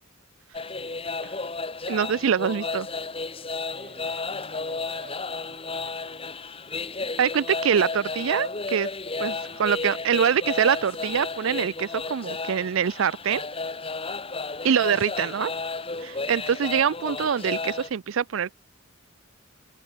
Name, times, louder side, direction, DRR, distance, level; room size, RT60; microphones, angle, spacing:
sound 1, 0.5-17.9, left 3 dB, 25° left, 2.1 m, -33 dB
voice 1, 0.7-1.0 3.6-6.4 9.1-9.7, right 2 dB, 40° right, 7.0 m, -51 dB
voice 2, 1.9-2.9 7.2-8.9 9.2-9.3 9.6-13.4 14.6-15.5 16.0-18.5, right 7 dB, 75° right, 0.4 m, -24 dB
head